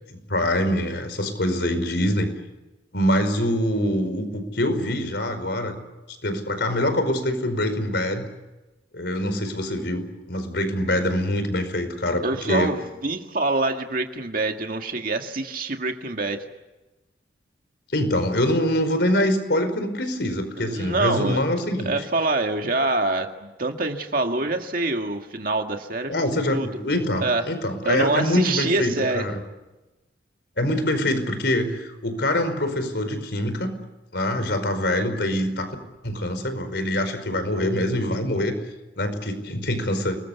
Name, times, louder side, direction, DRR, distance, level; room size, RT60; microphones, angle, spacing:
voice 1, 0.3-2.3 2.9-5.8 6.2-8.2 8.9-12.7 17.9-21.9 26.1-29.4 30.6-33.7 34.1-35.7 36.0-38.6 39.0-40.2, left 1 dB, 65° left, 9 dB, 5.0 m, -24 dB
voice 2, 12.2-16.4 20.6-21.4 21.8-26.2 26.5-26.8 27.2-27.5 27.8-29.3, right 2 dB, 50° right, 4 dB, 2.0 m, -25 dB
29.5 x 21.5 x 8.2 m, 1.1 s
head